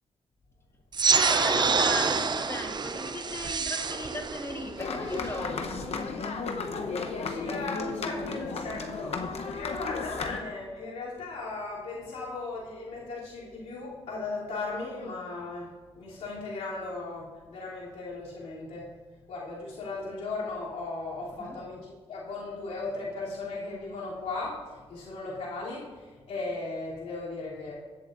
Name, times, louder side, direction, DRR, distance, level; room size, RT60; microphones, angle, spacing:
sound 1, 0.9-5.9, right 5 dB, 40° right, 0.5 m, -27 dB
voice 1, 1.1-5.7 21.4-21.6, left 1 dB, 25° left, 2 dB, 1.5 m, -36 dB
sound 2, 4.8-10.4, left 4 dB, 65° left, 0.9 m, -34 dB
voice 2, 7.1-18.9 19.3-27.7, left 3 dB, 90° left, -7 dB, 3.1 m, -37 dB
16.0 x 7.5 x 2.6 m, 1.3 s
cardioid pair, 70°, 11 cm